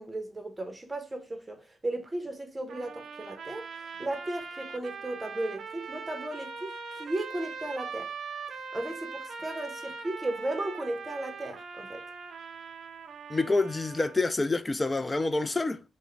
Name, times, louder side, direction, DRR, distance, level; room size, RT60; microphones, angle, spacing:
voice 1, 0.0-3.7 4.0-6.7 7.0-8.1 8.7-12.0, right 1 dB, 20° right, 0.8 m, -35 dB
sound 1, 2.7-14.2, right 5 dB, 65° right, 0.5 m, -41 dB
voice 2, 13.3-15.8, left 3 dB, 25° left, 0.4 m, -27 dB
3.4 x 2.1 x 3.2 m
cardioid pair, 70°, 0 cm